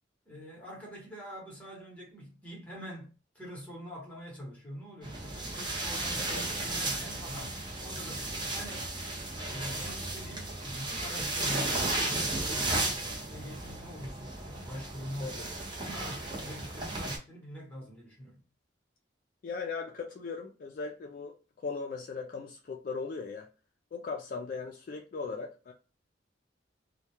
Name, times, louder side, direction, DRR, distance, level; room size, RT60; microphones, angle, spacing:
voice 1, 0.3-8.9 9.4-15.4 15.8-18.4, equal, 10° left, 0.9 m, -44 dB
sound 1, 5.0-17.2, right 2 dB, 25° right, 0.6 m, -34 dB
voice 2, 19.4-23.5 23.9-25.7, left 4 dB, 45° left, 0.3 m, -38 dB
2.2 x 2.1 x 2.8 m
head